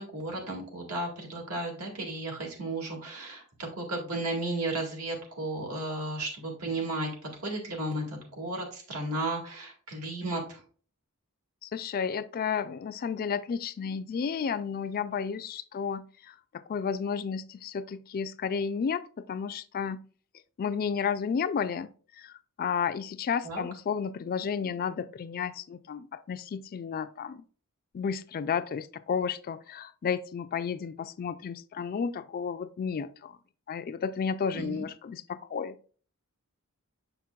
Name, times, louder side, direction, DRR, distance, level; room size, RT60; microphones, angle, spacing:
voice 1, 0.0-7.1 7.4-10.6 23.4-23.6 34.5-34.8, right 2 dB, 85° right, 2.1 m, -34 dB
voice 2, 11.6-16.3 16.7-20.0 20.6-21.9 22.2-22.3 22.6-27.4 27.9-33.4 33.7-35.8, left 6 dB, 40° left, 0.3 m, -32 dB
6.8 x 5.9 x 2.3 m
head